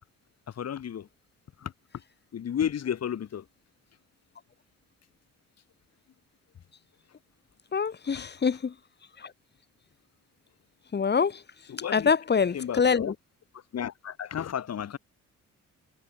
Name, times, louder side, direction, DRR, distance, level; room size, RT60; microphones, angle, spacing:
voice 1, 0.6-1.1 1.6-1.7 2.3-3.4 8.1-8.2 11.7-12.1 12.5-13.1 13.7-15.0, left 9 dB, 55° left, 3.8 m, -32 dB
voice 2, 7.7-8.7 9.2-9.3 10.9-11.4 11.9-13.1, left 6 dB, 35° left, 1.7 m, -25 dB
cardioid pair, 90°, 30 cm